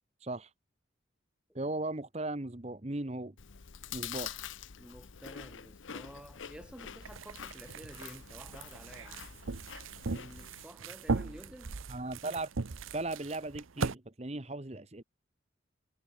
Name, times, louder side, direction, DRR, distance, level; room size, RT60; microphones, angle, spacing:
voice 1, 1.5-3.3 3.9-4.4 11.9-12.5 12.9-15.0, right 2 dB, 35° right, 1.1 m, -37 dB
Chewing mastication, 3.4-10.7, left 8 dB, 75° left, 0.9 m, -46 dB
voice 2, 4.8-9.2 10.0-11.8, equal, 5° right, 2.0 m, -51 dB
sound 1, 7.0-13.9, right 4 dB, 90° right, 0.8 m, -38 dB
head